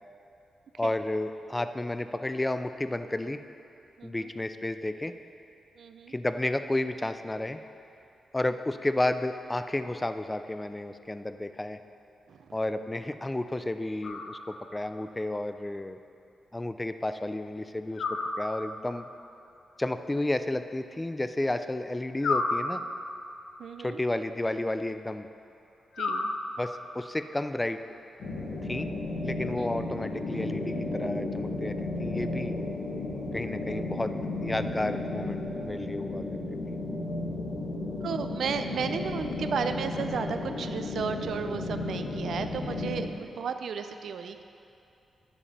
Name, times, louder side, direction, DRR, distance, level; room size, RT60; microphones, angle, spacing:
voice 1, 0.8-3.4 4.0-5.1 6.1-7.6 8.3-11.8 12.5-16.0 16.5-19.1 19.8-22.8 23.8-25.3 26.6-27.8 28.6-28.9 29.2-32.6 33.3-34.1 34.4-36.3, left 1 dB, 10° left, 10 dB, 0.3 m, -32 dB
voice 2, 4.0-4.3 5.8-6.1 12.3-12.6 23.6-24.0 26.0-26.3 29.6-29.8 38.0-44.4, right 6 dB, 65° right, 8 dB, 0.4 m, -34 dB
sound 1, 14.0-14.9 18.0-19.0 22.2-23.3 25.9-26.9, left 3 dB, 80° left, 0.7 m, -32 dB
sound 2, 28.2-43.0, left 2 dB, 60° left, 1.5 m, -33 dB
9.9 x 7.0 x 4.2 m, 2.7 s
wide cardioid pair, 145°, 0 cm